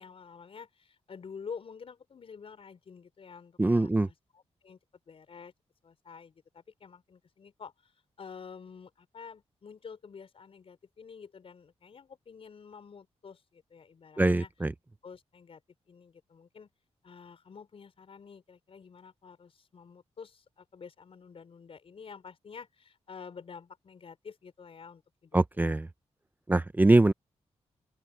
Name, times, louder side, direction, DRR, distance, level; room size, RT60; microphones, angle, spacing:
voice 1, 0.0-4.8 5.1-5.5 5.8-7.9 8.2-14.5 15.0-15.6 15.9-16.7 17.0-25.8, left 6 dB, 55° left, 5.2 m, -49 dB
voice 2, 3.6-4.1 14.2-14.7 25.3-25.9 26.5-27.1, right 2 dB, 15° right, 0.7 m, -23 dB
open air
wide cardioid pair, 105°, 12 cm